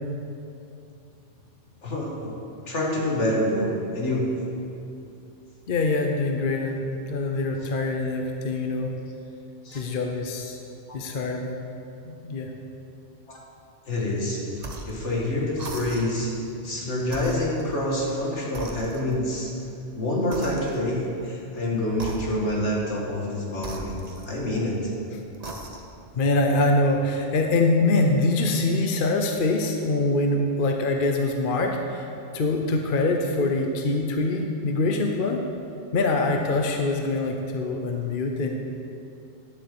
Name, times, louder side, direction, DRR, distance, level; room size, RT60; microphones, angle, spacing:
voice 1, 1.8-2.4 2.7-4.3 9.6-9.8 13.3-13.4 13.9-14.4 14.8-16.3 16.6-19.5 19.9-24.9, left 1 dB, 75° left, -3 dB, 2.2 m, -27 dB
voice 2, 5.7-8.9 9.7-10.6 10.9-11.6 12.0-12.5 26.2-32.1 32.3-35.4 35.9-38.5, left 2 dB, 50° left, 3 dB, 0.9 m, -24 dB
Hit sound, 14.6-15.0 15.6-16.3 17.1-18.2 18.6-19.3 20.3-21.1 21.9-22.7 23.6-24.7 25.3-26.0, right 2 dB, 35° right, 0.9 m, -39 dB
10.0 x 7.2 x 6.8 m, 2.7 s
omnidirectional pair, 1.2 m